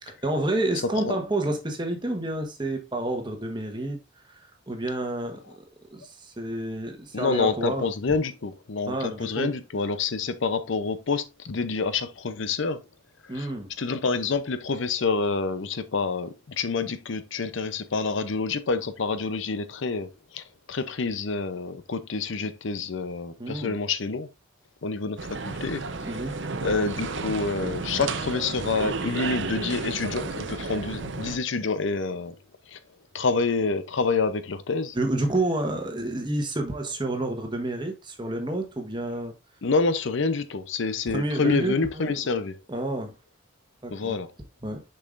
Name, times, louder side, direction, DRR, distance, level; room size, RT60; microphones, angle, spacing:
voice 1, 0.0-4.0 4.2-4.4 4.7-5.6 5.9-7.9 8.9-9.5 13.3-13.7 23.4-23.8 26.0-26.4 34.9-39.3 41.1-42.1 42.7-43.1 43.8-44.2 44.6-44.8, right 1 dB, 20° right, 1.2 m, -29 dB
voice 2, 7.1-12.8 13.2-13.5 13.8-24.3 24.8-26.1 26.6-32.3 32.7-32.8 33.1-35.0 39.6-42.6 43.9-44.3, left 4 dB, 65° left, 0.6 m, -27 dB
sound 1, 25.2-31.4, right 4 dB, 60° right, 0.7 m, -32 dB
6.8 x 5.5 x 2.5 m
head